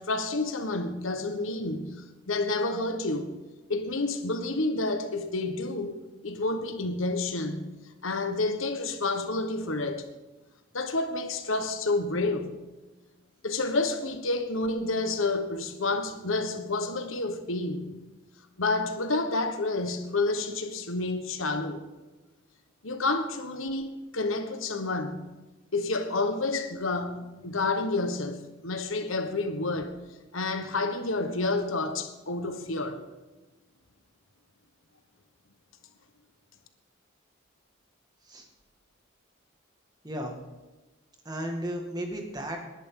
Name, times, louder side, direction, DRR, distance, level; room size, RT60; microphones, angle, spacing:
voice 1, 0.0-3.3 3.7-7.7 8.0-10.0 10.7-12.5 13.4-17.9 18.6-21.8 22.8-25.3 25.7-29.9 30.3-33.0, left 2 dB, 80° left, 1.3 m, -29 dB
voice 2, 40.0-40.4 41.3-42.6, equal, 20° right, 2.0 m, -34 dB
20.5 x 11.0 x 3.9 m
head